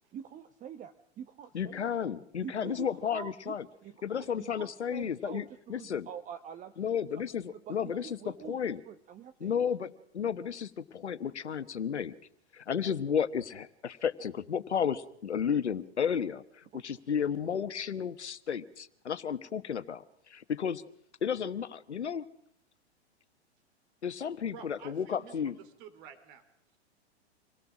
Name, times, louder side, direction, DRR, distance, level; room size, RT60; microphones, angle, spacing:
voice 1, 0.1-1.9 2.4-3.5 3.8-6.7 7.5-9.5 16.7-16.9 17.5-17.7, right 9 dB, 25° right, 10 dB, 0.9 m, -46 dB
voice 2, 1.5-3.7 4.0-6.1 6.8-8.8 9.4-12.1 12.5-16.4 16.7-20.0 20.3-20.8 21.2-22.2 24.0-25.6, left 7 dB, 85° left, 14 dB, 1.2 m, -33 dB
voice 3, 24.5-26.4, right 8 dB, 50° right, 11 dB, 3.1 m, -50 dB
27.0 x 18.0 x 6.1 m, 0.71 s
hypercardioid pair, 105°, 33 cm